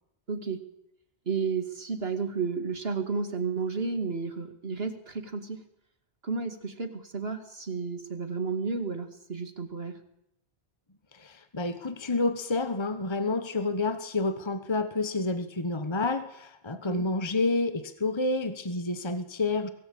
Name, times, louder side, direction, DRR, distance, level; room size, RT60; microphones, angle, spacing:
voice 1, 0.3-0.6 1.3-5.6 6.2-10.0 16.7-17.0, right 5 dB, 70° right, 8 dB, 2.6 m, -32 dB
voice 2, 11.1-19.7, left 3 dB, 25° left, 10 dB, 1.3 m, -29 dB
23.0 x 18.0 x 8.7 m, 0.78 s
omnidirectional pair, 1.1 m